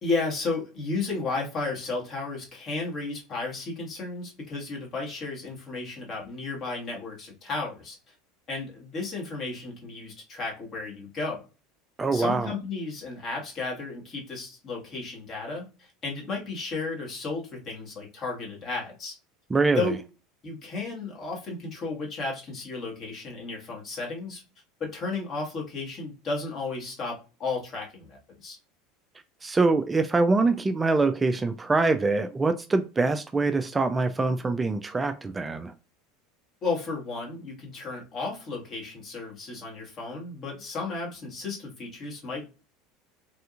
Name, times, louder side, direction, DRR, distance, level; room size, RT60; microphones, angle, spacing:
voice 1, 0.0-8.1 8.5-11.4 12.1-19.1 19.7-20.0 20.4-24.4 24.8-28.6 36.6-42.4, left 3 dB, 40° left, 1.7 m, -33 dB
voice 2, 12.0-12.5 19.5-19.9 29.4-35.7, right 3 dB, 20° right, 0.3 m, -24 dB
3.3 x 2.7 x 2.5 m
hypercardioid pair, 85°, 0 cm